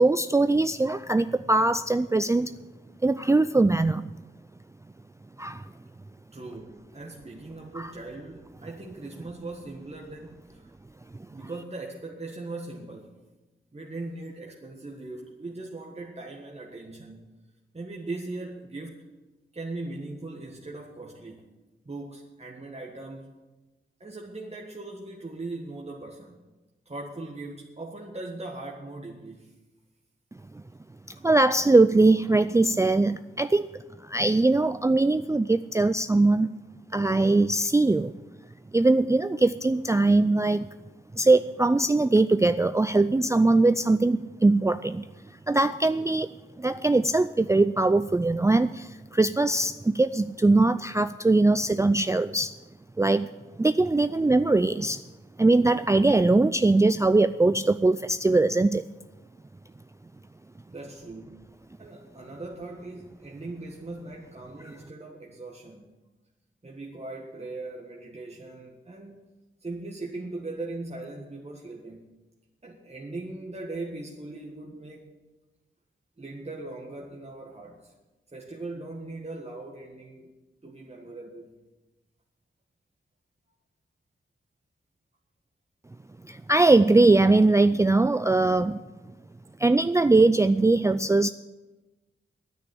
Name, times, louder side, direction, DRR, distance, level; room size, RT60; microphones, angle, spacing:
voice 1, 0.0-2.5 3.0-4.1 5.4-5.7 7.7-7.9 30.5-30.6 31.2-33.7 34.0-36.5 36.9-38.1 38.7-40.7 41.1-45.1 45.5-52.6 53.0-53.3 53.6-55.0 55.4-58.8 86.3-88.8 89.6-91.3, right 2 dB, 15° right, 12 dB, 0.4 m, -21 dB
voice 2, 6.3-10.7 11.3-13.2 13.7-17.2 17.7-19.0 19.5-21.5 21.8-23.3 24.0-26.4 26.8-29.5 60.7-61.5 61.8-65.8 66.6-69.3 69.6-72.0 72.6-75.1 76.2-77.9 78.3-80.3 80.6-81.5, right 2 dB, 30° right, 0 dB, 1.7 m, -39 dB
9.9 x 9.5 x 9.8 m, 1.1 s
cardioid pair, 60°, 21 cm